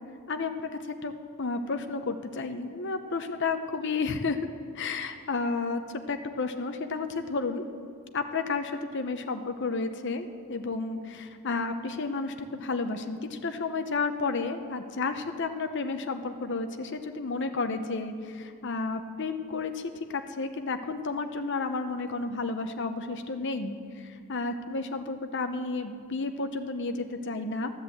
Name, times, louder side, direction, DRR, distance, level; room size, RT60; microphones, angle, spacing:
voice 1, 1.4-4.4 4.7-5.8 6.1-7.6 8.1-27.7, left 3 dB, 55° left, 7 dB, 0.8 m, -32 dB
12.5 x 10.0 x 8.0 m, 2.2 s
head